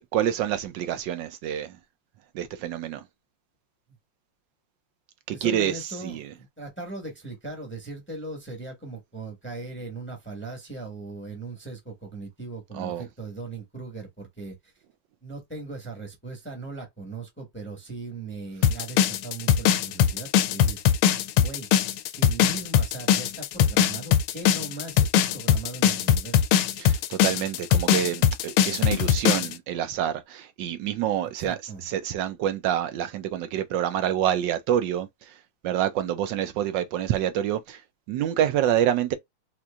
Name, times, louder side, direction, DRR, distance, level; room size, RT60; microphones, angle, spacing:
voice 1, 0.1-1.8 2.3-3.0 5.3-6.3 12.7-13.1 26.8-35.3 35.6-37.8 38.1-39.1, right 10 dB, 75° right, 1.0 m, -27 dB
voice 2, 5.3-14.7 15.2-20.8 21.3-21.7 22.1-26.4 31.4-31.9, right 3 dB, 10° left, 0.8 m, -39 dB
sound 1, 18.6-29.5, left 9 dB, 85° left, 1.5 m, -21 dB
4.4 x 2.5 x 2.3 m
omnidirectional pair, 2.4 m